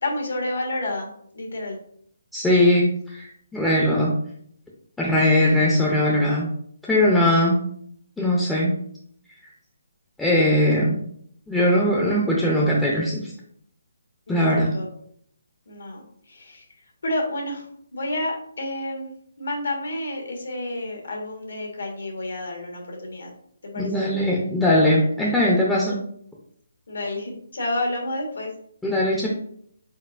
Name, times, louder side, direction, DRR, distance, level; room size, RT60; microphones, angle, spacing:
voice 1, 0.0-1.8 14.3-14.9 15.7-16.6 17.0-17.6 17.9-19.1 19.4-23.3 23.6-23.9 26.9-28.5, left 1 dB, 75° left, 1 dB, 1.3 m, -30 dB
voice 2, 2.3-4.1 5.0-6.5 6.8-7.6 8.2-8.7 10.2-11.0 11.5-13.3 14.3-14.7 23.8-26.0 28.8-29.3, left 1 dB, 5° left, -5 dB, 0.5 m, -20 dB
4.4 x 4.0 x 2.4 m, 0.66 s
hypercardioid pair, 165°, 0 cm